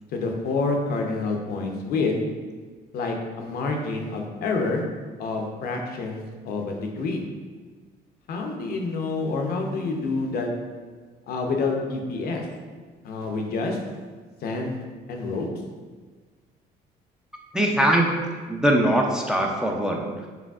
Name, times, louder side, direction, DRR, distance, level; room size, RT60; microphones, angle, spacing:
voice 1, 0.1-2.2 2.9-4.8 5.2-7.2 8.3-10.5 11.3-12.5 13.0-13.8 14.4-14.8 15.1-15.5, left 3 dB, 65° left, 2 dB, 0.6 m, -28 dB
voice 2, 17.5-18.2 18.5-20.3, right 1 dB, 5° right, 0 dB, 0.4 m, -22 dB
4.9 x 3.3 x 2.3 m, 1.4 s
cardioid pair, 110°, 17 cm